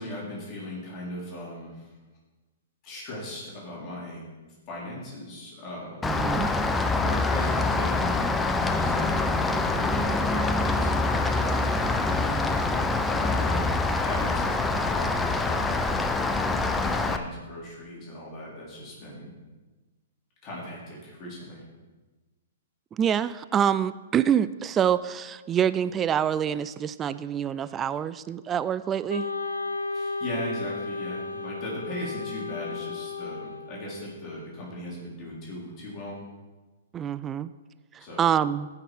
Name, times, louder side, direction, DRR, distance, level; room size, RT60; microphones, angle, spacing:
voice 1, 0.0-1.9 2.8-4.3 4.7-6.1 6.9-8.2 8.7-12.0 13.1-13.7 13.9-15.8 16.4-19.3 20.4-21.6 29.9-36.2 38.0-38.3, left 1 dB, 35° left, -5 dB, 3.6 m, -38 dB
Rain, 6.0-17.2, left 3 dB, 10° left, 0.7 m, -25 dB
voice 2, 6.0-6.5 12.3-12.6 22.9-29.3 36.9-37.5 38.2-38.7, right 9 dB, 20° right, 15 dB, 0.3 m, -26 dB
Wind instrument woodwind instrument, 29.1-34.2, left 3 dB, 90° left, 0.7 m, -34 dB
15.0 x 5.9 x 4.6 m, 1.2 s
hypercardioid pair, 120°, 0 cm